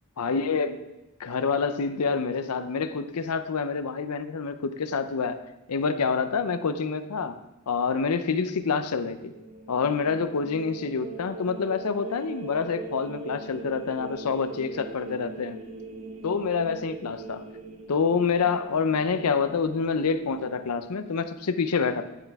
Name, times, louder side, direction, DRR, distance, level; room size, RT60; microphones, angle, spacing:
voice 1, 0.2-0.8 1.2-5.4 5.7-7.4 7.7-9.3 9.7-15.6 16.2-17.4 17.9-22.0, left 5 dB, 85° left, 10 dB, 0.6 m, -27 dB
sound 1, 9.1-20.6, right 3 dB, 75° right, 1.6 m, -42 dB
10.0 x 9.0 x 3.5 m, 1.0 s
head